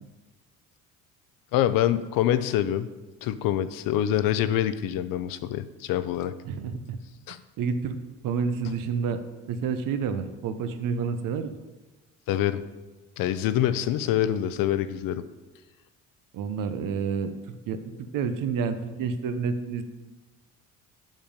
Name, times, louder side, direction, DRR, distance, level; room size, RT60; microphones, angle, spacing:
voice 1, 1.5-2.9 3.2-6.3 7.3-7.4 12.3-12.6 13.2-15.2, left 11 dB, 80° left, 13 dB, 0.6 m, -25 dB
voice 2, 6.5-7.0 7.6-8.0 8.2-9.2 9.5-11.6 16.3-17.3 17.7-19.8, right 6 dB, 70° right, 10 dB, 0.8 m, -29 dB
7.4 x 5.3 x 5.1 m, 1.2 s
cardioid pair, 125°, 33 cm